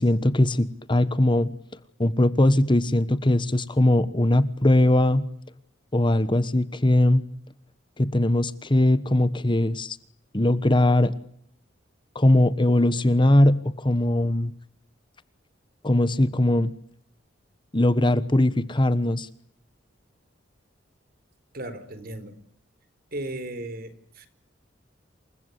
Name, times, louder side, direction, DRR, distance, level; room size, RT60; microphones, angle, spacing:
voice 1, 0.0-1.5 2.0-5.3 5.9-7.2 8.0-10.0 10.3-11.1 12.1-14.5 15.8-16.7 17.7-19.3, left 1 dB, 25° left, 14 dB, 1.2 m, -20 dB
voice 2, 21.5-22.3 23.1-24.3, right 1 dB, 55° right, 13 dB, 4.3 m, -36 dB
28.5 x 23.5 x 8.4 m, 0.67 s
head